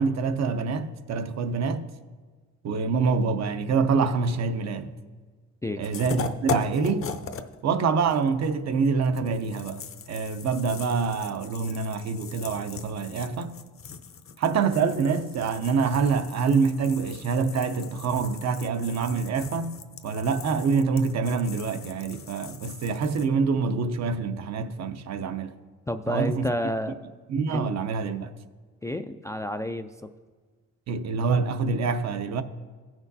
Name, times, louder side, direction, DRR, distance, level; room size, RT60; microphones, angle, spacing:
voice 1, 0.0-1.9 2.6-5.0 5.8-7.2 7.6-13.6 14.4-19.8 20.0-25.6 26.1-26.5 27.3-28.3 30.9-32.4, right 5 dB, 60° right, 0.7 m, -26 dB
sound 1, 5.8-7.6 7.8-23.3, left 6 dB, 45° left, 0.7 m, -39 dB
voice 2, 25.9-27.0 27.5-27.7 28.8-30.1, left 1 dB, 10° left, 0.3 m, -30 dB
16.5 x 6.1 x 2.7 m
cardioid pair, 90°, 30 cm